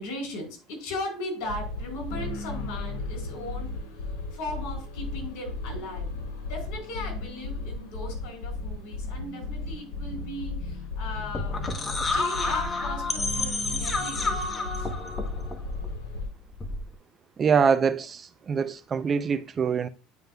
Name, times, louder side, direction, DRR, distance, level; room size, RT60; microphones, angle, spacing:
voice 1, 0.0-3.7 4.3-6.1 6.5-11.8 12.1-14.9, left 1 dB, 65° left, 3.9 m, -37 dB
sound 1, 1.4-16.3, left 3 dB, 85° left, 1.7 m, -35 dB
sound 2, 11.2-16.9, left 3 dB, 20° left, 0.9 m, -30 dB
voice 2, 17.4-19.9, right 6 dB, 25° right, 0.5 m, -24 dB
9.4 x 5.2 x 2.3 m
cardioid pair, 140°, 0 cm